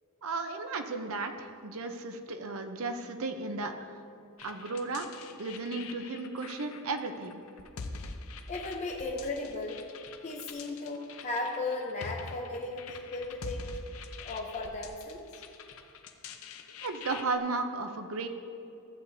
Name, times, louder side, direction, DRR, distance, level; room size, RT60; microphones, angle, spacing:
voice 1, 0.2-4.0 4.4-5.1 5.3-7.4 16.7-18.3, right 3 dB, 65° right, 6 dB, 0.7 m, -35 dB
sound 1, 4.4-17.4, left 4 dB, 65° left, 0.7 m, -45 dB
voice 2, 8.5-9.8 10.2-13.7 14.2-15.3, left 2 dB, 30° left, -1 dB, 0.7 m, -36 dB
14.5 x 8.3 x 2.7 m, 2.8 s
head